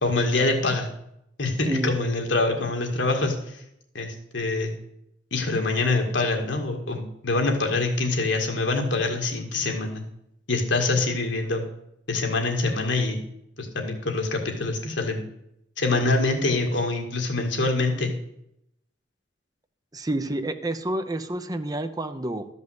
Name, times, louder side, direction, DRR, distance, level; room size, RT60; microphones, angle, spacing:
voice 1, 0.0-0.9 1.4-3.6 3.9-4.7 5.3-10.0 10.5-11.6 12.1-13.2 13.6-15.3 15.8-18.1, left 3 dB, 80° left, 3 dB, 2.0 m, -25 dB
voice 2, 19.9-22.5, right 1 dB, 20° right, 7 dB, 0.7 m, -29 dB
13.0 x 5.4 x 7.9 m, 0.79 s
head